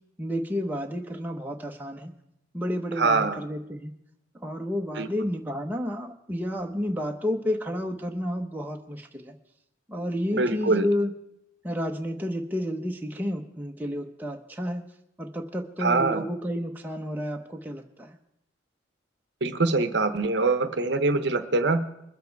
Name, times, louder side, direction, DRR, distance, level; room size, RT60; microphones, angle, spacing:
voice 1, 0.2-2.1 2.5-3.9 4.4-9.4 9.9-11.1 11.6-14.8 15.2-18.2, equal, 10° right, 2 dB, 0.8 m, -31 dB
voice 2, 3.0-3.4 5.0-5.1 10.3-10.9 15.8-16.3 19.4-21.8, right 3 dB, 60° right, 10 dB, 0.9 m, -24 dB
22.5 x 7.5 x 4.6 m, 0.81 s
head